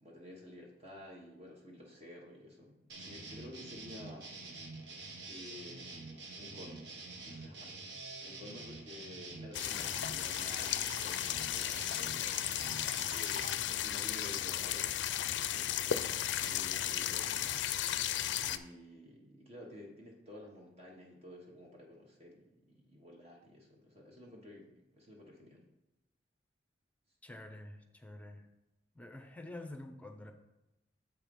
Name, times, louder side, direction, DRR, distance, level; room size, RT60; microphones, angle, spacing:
voice 1, 0.0-4.3 5.3-7.7 8.2-12.4 13.1-17.5 18.4-25.6, left 1 dB, 35° right, -2 dB, 1.2 m, -52 dB
sound 1, 2.9-13.6, right 3 dB, 75° right, 1.2 m, -47 dB
sound 2, 9.5-18.6, left 11 dB, 75° left, 0.4 m, -35 dB
voice 2, 27.2-28.5 28.9-30.3, left 1 dB, 10° left, 6 dB, 0.6 m, -48 dB
7.3 x 4.6 x 5.3 m, 0.96 s
head